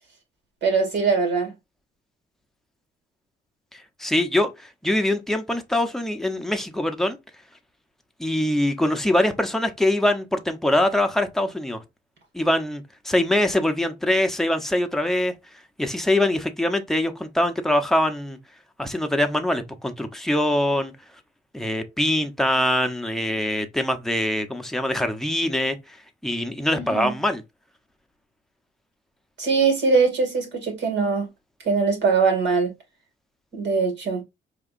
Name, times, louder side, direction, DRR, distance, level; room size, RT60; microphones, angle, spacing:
voice 1, 0.6-1.5 26.7-27.1 29.4-31.3 31.6-32.7 33.5-34.2, right 4 dB, 60° right, 2.4 m, -22 dB
voice 2, 3.7-7.2 8.2-11.8 12.3-15.3 15.8-18.4 18.8-20.9 21.5-26.0 26.2-27.4, left 1 dB, ahead, 0.8 m, -23 dB
4.8 x 2.9 x 2.5 m
cardioid pair, 90°, 20 cm